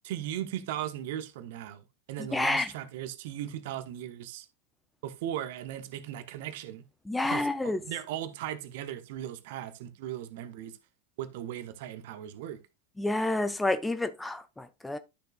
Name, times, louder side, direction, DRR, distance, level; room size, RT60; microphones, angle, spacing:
voice 1, 0.0-1.8 2.1-4.5 5.0-6.8 7.2-10.7 11.2-12.6, right 11 dB, 50° right, 1.0 m, -37 dB
voice 2, 2.3-2.7 7.1-7.8 13.0-15.0, left 2 dB, 5° left, 0.7 m, -29 dB
11.5 x 6.5 x 2.4 m
figure-of-eight pair, 90°, 0 cm